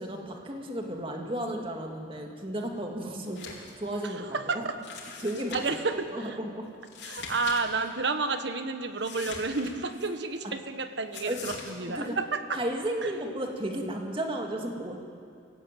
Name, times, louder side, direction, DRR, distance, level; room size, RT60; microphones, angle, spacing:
voice 1, 0.0-3.5 3.8-4.7 5.2-6.7 10.4-10.5 11.3-11.5 11.9-12.2 12.5-15.0, right 1 dB, 30° right, 2 dB, 2.3 m, -34 dB
Book Page Turn, 3.2-3.7 4.0-4.1 4.8-5.8 6.8-7.6 7.8-7.9 9.0-10.1 11.1-11.7, left 5 dB, 65° left, 4.0 m, -42 dB
voice 2, 4.0-4.8 5.5-6.4 7.0-12.6, right 3 dB, 65° right, 8 dB, 1.4 m, -31 dB
24.0 x 16.0 x 9.3 m, 2.3 s
head